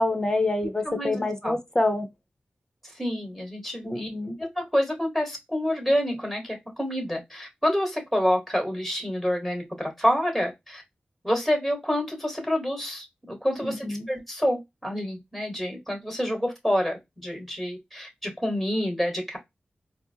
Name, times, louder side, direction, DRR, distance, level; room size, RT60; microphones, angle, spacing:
voice 1, 0.0-2.1 3.8-4.4 13.6-14.1, left 2 dB, 20° left, 0.9 m, -26 dB
voice 2, 0.8-1.6 2.9-4.1 4.4-10.8 11.2-19.4, equal, ahead, 1.6 m, -28 dB
4.3 x 2.1 x 2.7 m
wide cardioid pair, 70°, 4 cm